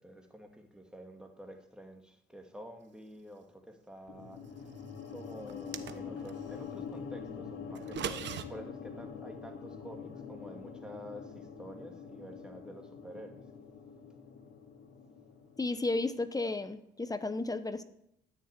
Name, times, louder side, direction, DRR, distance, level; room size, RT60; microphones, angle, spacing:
voice 1, 0.0-4.7 5.1-13.4, equal, 5° right, 4 dB, 2.4 m, -49 dB
sound 1, 4.1-16.3, left 6 dB, 80° left, 2.2 m, -45 dB
sound 2, 5.5-6.4 7.7-8.4, right 9 dB, 65° right, 1.1 m, -39 dB
voice 2, 15.6-17.8, left 2 dB, 20° left, 12 dB, 1.0 m, -33 dB
13.0 x 6.6 x 9.6 m, 0.79 s
cardioid pair, 90°, 20 cm